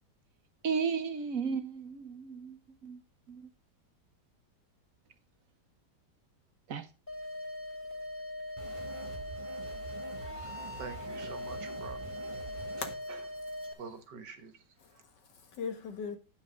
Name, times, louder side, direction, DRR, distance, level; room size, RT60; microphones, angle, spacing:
voice 1, 0.6-3.0 3.3-3.5 6.7-6.8, right 6 dB, 55° right, 1.3 m, -34 dB
sound 1, 7.1-13.7, left 1 dB, 5° left, 2.5 m, -41 dB
sound 2, 8.6-13.0, right 4 dB, 25° right, 0.8 m, -46 dB
voice 2, 10.2-12.3 13.1-13.3 13.6-15.0, right 5 dB, 85° right, 1.9 m, -47 dB
voice 3, 12.5-13.1 13.7-13.8 14.8-16.2, left 6 dB, 90° left, 2.3 m, -41 dB
10.0 x 5.7 x 5.1 m
omnidirectional pair, 1.8 m